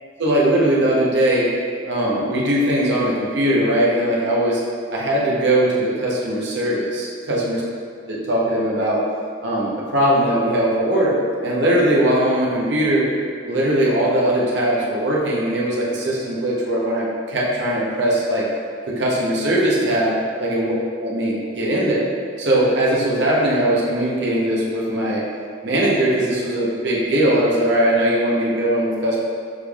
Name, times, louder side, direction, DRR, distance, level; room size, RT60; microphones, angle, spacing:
voice 1, 0.2-1.5 1.9-4.6 4.9-7.6 8.1-9.0 9.4-11.2 11.4-13.1 13.4-18.5 18.9-20.1 20.4-20.8 21.0-22.1 22.4-25.2 25.6-29.2, right 1 dB, 60° right, -5 dB, 0.8 m, -20 dB
6.5 x 3.4 x 2.3 m, 2.2 s
head